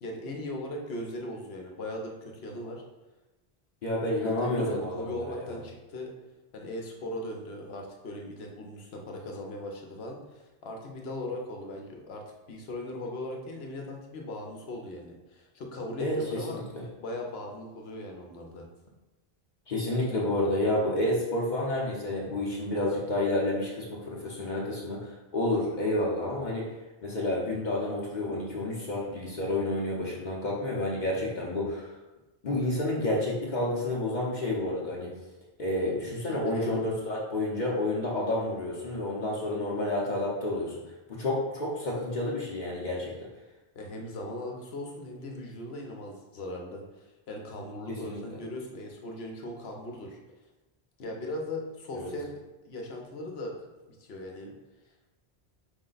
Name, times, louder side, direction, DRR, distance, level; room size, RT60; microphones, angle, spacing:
voice 1, 0.0-2.8 4.2-6.1 6.5-16.6 17.0-18.7 36.1-36.9 43.8-50.2 51.0-52.4 52.6-53.5 53.9-54.6, left 1 dB, 75° left, 1 dB, 1.0 m, -39 dB
voice 2, 3.8-5.5 16.0-16.8 19.7-26.7 27.0-31.9 32.4-35.1 35.6-40.8 41.1-43.1 48.0-48.2 51.9-52.1, left 1 dB, 50° left, -4 dB, 0.8 m, -30 dB
5.2 x 2.1 x 3.9 m, 1.1 s
omnidirectional pair, 1.1 m